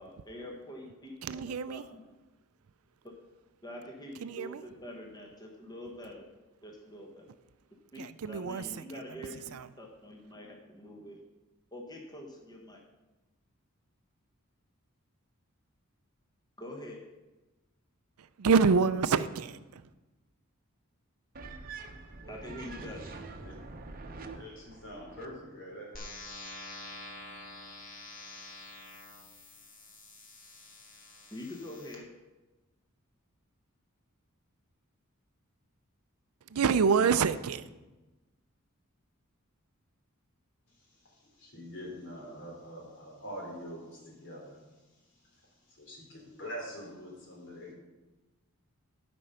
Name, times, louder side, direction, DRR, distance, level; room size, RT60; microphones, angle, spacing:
voice 1, 0.0-2.0 3.0-3.1 3.6-6.3 6.6-7.3 7.9-11.3 11.7-12.8 16.6-17.0 22.3-23.2 31.3-32.1, left 1 dB, 20° left, 1.2 m, -45 dB
voice 2, 1.2-1.8 4.2-4.6 8.0-8.8 9.5-9.7 18.4-19.6 36.5-37.6, right 5 dB, 85° right, 0.5 m, -27 dB
sound 1, 21.3-25.4, right 3 dB, 45° right, 0.8 m, -45 dB
voice 3, 24.3-26.0 40.7-47.7, equal, 60° left, 3.2 m, -45 dB
sound 2, 25.9-31.9, left 2 dB, 40° left, 1.6 m, -47 dB
12.0 x 5.3 x 5.6 m
head